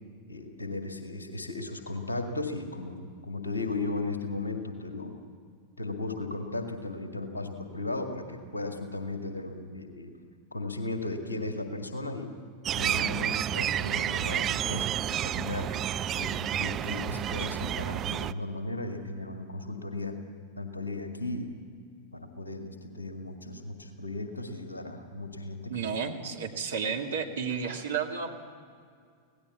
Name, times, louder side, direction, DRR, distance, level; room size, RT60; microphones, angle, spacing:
voice 1, 0.3-5.2 5.8-10.1 10.5-12.3 12.7-15.7 16.2-20.2 20.6-21.6 22.1-25.8, left 2 dB, 80° left, 5 dB, 2.0 m, -36 dB
sound 1, 12.6-18.3, right 11 dB, 30° right, 0.5 m, -30 dB
voice 2, 25.7-28.3, right 6 dB, 65° right, 2 dB, 2.1 m, -32 dB
25.5 x 17.5 x 7.3 m, 2.1 s
figure-of-eight pair, 90°, 0 cm